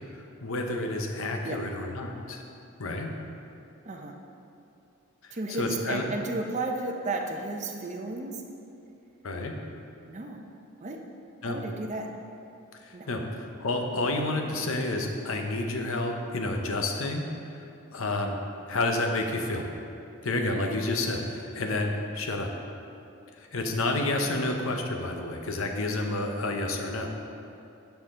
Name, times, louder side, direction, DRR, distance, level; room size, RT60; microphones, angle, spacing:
voice 1, 0.1-2.4 2.8-3.1 5.2-6.0 9.2-9.5 11.4-11.6 12.8-17.2 17.9-18.4 18.7-19.7 20.2-22.5 23.4-27.1, left 2 dB, 70° left, 3 dB, 0.7 m, -30 dB
voice 2, 3.8-4.1 5.3-8.4 10.0-10.4 10.8-11.0 11.4-12.1 12.9-13.1 24.3-24.4, right 2 dB, 35° right, 2 dB, 0.5 m, -33 dB
8.8 x 5.8 x 3.7 m, 2.7 s
head